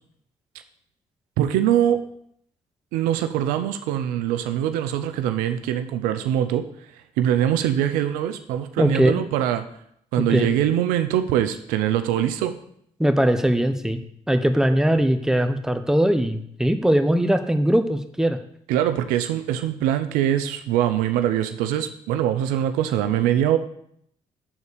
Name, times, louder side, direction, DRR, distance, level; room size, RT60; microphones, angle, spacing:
voice 1, 1.4-2.0 2.9-6.7 7.2-9.7 10.1-12.6 18.7-23.6, right 11 dB, 90° right, 10 dB, 0.5 m, -23 dB
voice 2, 8.8-9.2 10.2-10.5 13.0-14.0 14.3-18.4, right 1 dB, 5° right, 8 dB, 0.9 m, -20 dB
7.1 x 4.1 x 6.6 m, 0.69 s
supercardioid pair, 55°, 14 cm